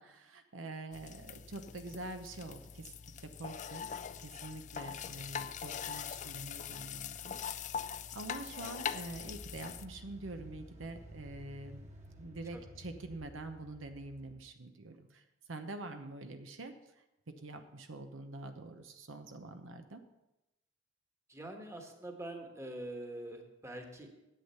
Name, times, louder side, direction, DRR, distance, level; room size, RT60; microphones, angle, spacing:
voice 1, 0.0-2.8 3.2-3.9 4.2-7.4 8.1-11.9 12.2-16.7 17.4-20.0, right 2 dB, 80° right, 7 dB, 0.9 m, -46 dB
sound 1, 0.9-9.9, left 7 dB, 40° left, 0.4 m, -42 dB
sound 2, 9.0-14.5, equal, 35° right, 1.6 m, -53 dB
voice 2, 21.3-24.1, right 1 dB, 15° right, 3 dB, 1.4 m, -44 dB
10.0 x 8.3 x 5.6 m, 0.94 s
head